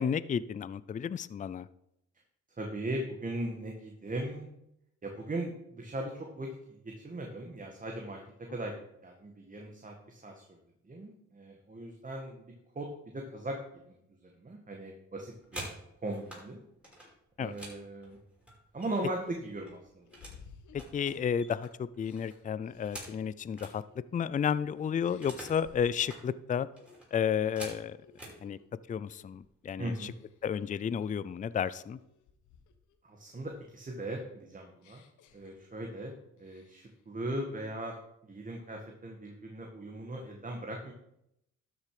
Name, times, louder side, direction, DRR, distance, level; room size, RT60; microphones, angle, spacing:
voice 1, 0.0-1.7 17.4-17.5 20.7-23.8 24.1-26.7 27.1-28.0 28.4-28.6 28.9-30.1 30.4-32.0, left 7 dB, 25° left, 17 dB, 0.4 m, -32 dB
voice 2, 2.6-4.5 5.0-10.6 10.8-13.6 13.9-15.7 16.0-16.6 17.4-18.2 18.7-20.1 29.8-30.1 33.0-35.0 35.3-38.0 38.2-40.9, right 1 dB, 25° right, 2 dB, 1.8 m, -39 dB
sound 1, 15.2-16.4 16.8-19.2 19.5-20.4 20.7-23.8 24.1-24.2 24.4-25.6 25.9-26.2 26.8-28.4 29.2-29.4 29.7-30.0 30.3-30.9, right 1 dB, 5° right, 5.1 m, -47 dB
sound 2, 18.2-18.3 18.8-21.5 22.0-24.6 25.0-26.3 26.7-27.0 27.4-28.7 29.1-29.4 29.9-30.5 31.0-33.0 33.3-36.0 36.4-37.0, left 6 dB, 75° left, 1.3 m, -59 dB
12.5 x 6.6 x 4.9 m, 0.79 s
cardioid pair, 90°, 30 cm